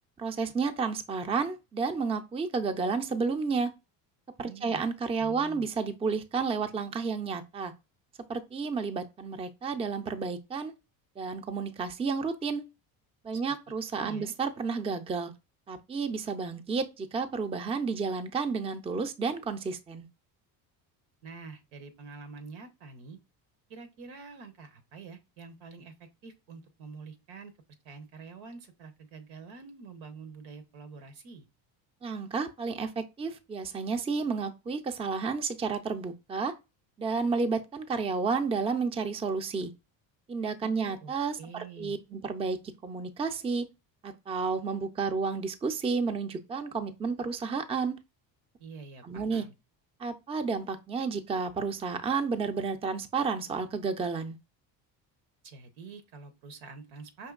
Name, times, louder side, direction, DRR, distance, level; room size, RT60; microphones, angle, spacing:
voice 1, 0.2-3.7 4.4-7.7 8.3-10.7 11.2-12.6 13.2-15.3 15.7-20.1 32.0-36.5 37.0-39.7 40.3-43.7 44.0-48.0 49.0-49.4 50.0-54.4, right 4 dB, 15° right, 0.4 m, -31 dB
voice 2, 4.4-4.8 5.1-5.7 13.3-13.4 14.0-14.3 21.2-23.2 23.7-27.5 27.8-31.4 40.6-42.0 48.6-49.5 55.4-57.3, right 4 dB, 90° right, 1.0 m, -47 dB
5.2 x 2.7 x 2.4 m
supercardioid pair, 80°, 50 cm